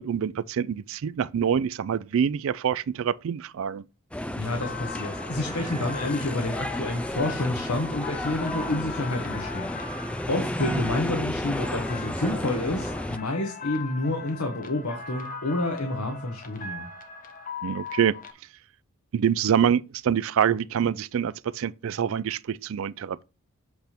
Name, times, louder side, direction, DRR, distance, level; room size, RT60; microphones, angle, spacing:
voice 1, 0.0-3.8 17.6-18.1 19.1-23.2, right 8 dB, 65° right, 0.4 m, -26 dB
sound 1, 4.1-13.2, left 1 dB, 5° left, 0.4 m, -32 dB
voice 2, 4.4-16.9, left 2 dB, 85° left, 1.3 m, -29 dB
sound 2, 4.6-18.3, left 4 dB, 40° left, 1.0 m, -40 dB
8.0 x 3.5 x 5.8 m
head